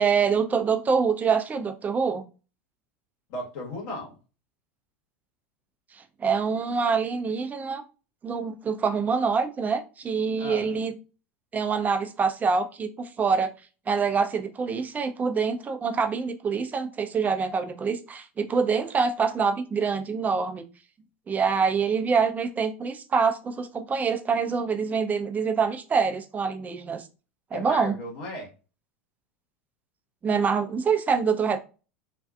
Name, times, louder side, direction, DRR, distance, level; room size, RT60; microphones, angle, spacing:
voice 1, 0.0-2.2 5.9-7.8 8.2-10.9 11.5-13.5 13.9-20.6 21.3-27.1 27.5-28.0 30.2-31.6, right 5 dB, 25° right, 7 dB, 0.5 m, -25 dB
voice 2, 3.3-4.2 10.4-10.8 27.5-28.5, left 1 dB, 60° left, 0 dB, 1.2 m, -35 dB
2.6 x 2.3 x 2.3 m, 0.33 s
hypercardioid pair, 95°, 7 cm